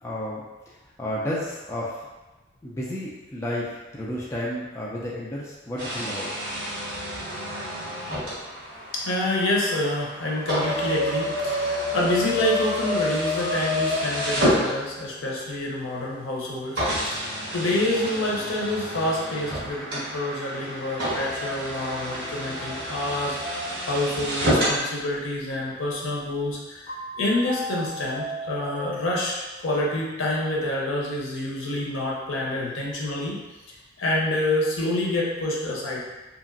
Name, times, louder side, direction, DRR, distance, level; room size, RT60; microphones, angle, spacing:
voice 1, 0.0-2.0 2.6-6.3, left 1 dB, 15° left, -5 dB, 0.3 m, -32 dB
sound 1, 5.8-15.3 16.0-16.1 16.8-24.8, equal, 55° right, 1.4 m, -28 dB
voice 2, 8.9-16.8 17.1-17.2 17.5-29.4 29.6-33.4 34.0-36.0, left 1 dB, 75° left, -3 dB, 0.6 m, -27 dB
sound 2, 26.9-29.7, equal, 55° left, 1.4 m, -36 dB
2.9 x 2.5 x 2.5 m, 1.1 s
head